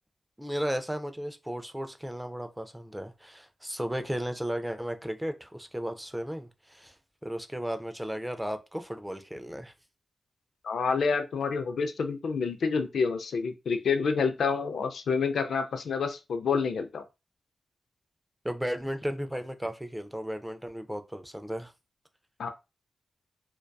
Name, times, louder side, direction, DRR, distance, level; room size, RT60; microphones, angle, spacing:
voice 1, 0.4-6.9 7.2-9.7 18.4-21.7, equal, 5° right, 0.3 m, -35 dB
voice 2, 10.6-17.0 22.4-22.5, left 5 dB, 85° left, 0.3 m, -28 dB
2.6 x 2.2 x 2.2 m
wide cardioid pair, 110°, 0 cm